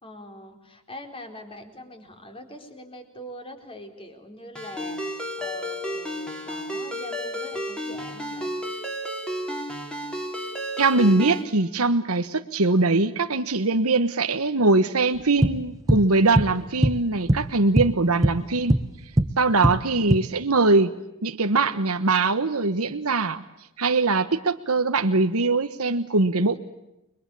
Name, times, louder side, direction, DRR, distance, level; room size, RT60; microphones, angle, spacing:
voice 1, 0.0-8.5 18.3-18.9, left 1 dB, 25° left, 5 dB, 4.3 m, -43 dB
Ringtone, 4.6-11.4, equal, 5° left, 3.9 m, -32 dB
voice 2, 10.8-18.7 19.4-20.9 21.2-23.4 23.8-26.6, right 3 dB, 75° right, 8 dB, 1.3 m, -22 dB
sound 1, 15.4-16.1 16.4-16.6 16.8-18.0 18.2-19.4 19.6-20.2, right 1 dB, 15° right, 1.0 m, -21 dB
30.0 x 23.0 x 8.5 m, 0.89 s
head